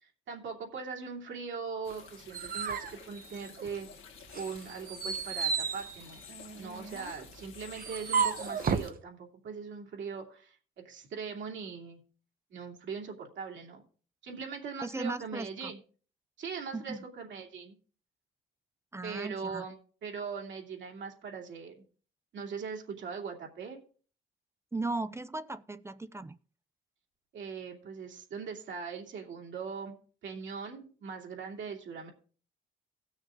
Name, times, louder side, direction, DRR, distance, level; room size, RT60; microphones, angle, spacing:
voice 1, 0.0-3.9 4.3-6.2 6.6-12.0 12.5-13.8 14.2-15.8 16.4-17.7 19.0-19.8 20.0-21.7 22.3-23.8 27.3-30.0 30.2-32.1, right 5 dB, 70° right, 2.6 m, -40 dB
sound 1, 1.8-8.9, left 8 dB, 85° left, 1.7 m, -51 dB
sound 2, 1.9-3.9 4.3-8.9, right 6 dB, 45° right, 0.9 m, -34 dB
voice 2, 14.8-15.7 16.7-17.0 18.9-19.7 24.7-26.4, right 2 dB, 15° right, 0.5 m, -37 dB
17.0 x 6.4 x 3.7 m
cardioid pair, 90°, 20 cm